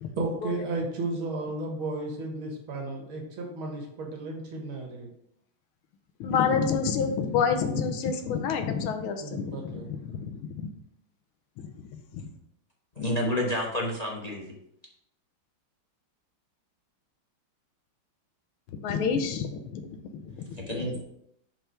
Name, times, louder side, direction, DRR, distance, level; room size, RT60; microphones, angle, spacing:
voice 1, 0.2-5.1 9.2-9.9, right 2 dB, 80° right, 1 dB, 2.3 m, -33 dB
voice 2, 6.2-10.7 11.6-11.7 12.1-12.2 18.8-20.6, left 6 dB, 90° left, 6 dB, 1.7 m, -28 dB
voice 3, 12.9-14.5 20.5-21.0, left 1 dB, 30° left, -2 dB, 0.7 m, -29 dB
5.8 x 5.5 x 4.5 m, 0.76 s
omnidirectional pair, 2.3 m